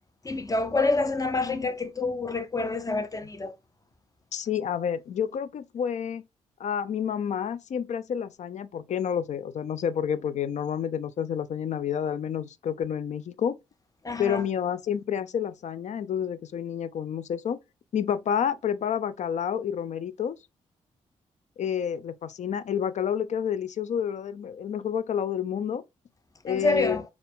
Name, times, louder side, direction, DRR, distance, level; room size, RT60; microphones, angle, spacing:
voice 1, 0.2-3.5 14.0-14.4 26.5-27.0, left 3 dB, 25° left, 0.8 m, -27 dB
voice 2, 4.3-6.2 6.6-13.6 14.2-17.6 17.9-20.4 21.6-25.8 26.4-27.0, left 8 dB, 60° left, 0.5 m, -29 dB
4.3 x 2.3 x 3.4 m
supercardioid pair, 45°, 14 cm